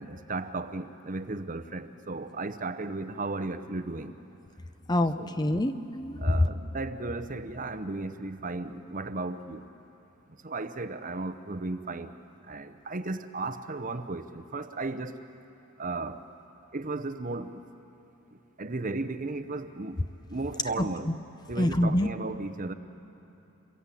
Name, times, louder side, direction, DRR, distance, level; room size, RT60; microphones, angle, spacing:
voice 1, 0.0-4.2 5.2-5.3 6.2-9.7 10.3-12.1 12.4-15.2 15.8-16.2 16.7-17.6 18.3-20.0 20.3-21.1 21.5-22.7, right 2 dB, 40° right, 11 dB, 0.8 m, -35 dB
voice 2, 4.9-6.2 20.8-21.1 21.6-22.1, left 1 dB, 20° left, 10 dB, 0.7 m, -27 dB
27.5 x 22.0 x 8.4 m, 3.0 s
head